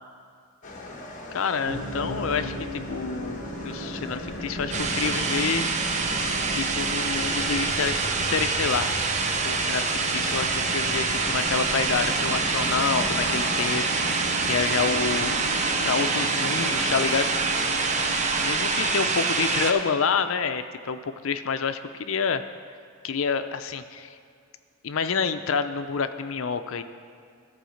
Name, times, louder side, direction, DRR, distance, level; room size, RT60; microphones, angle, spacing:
sound 1, 0.6-6.1, left 2 dB, 40° left, 1.1 m, -42 dB
voice 1, 1.3-5.9 6.5-9.1 9.4-13.8 14.1-15.4 15.8-17.3 18.4-22.4 23.0-24.1 24.8-26.8, left 5 dB, 70° left, 10 dB, 0.5 m, -28 dB
sound 2, 1.7-19.1, equal, 55° right, 2.6 m, -35 dB
sound 3, 4.7-19.7, right 4 dB, 35° right, 0.6 m, -26 dB
13.5 x 4.7 x 6.4 m, 2.3 s
head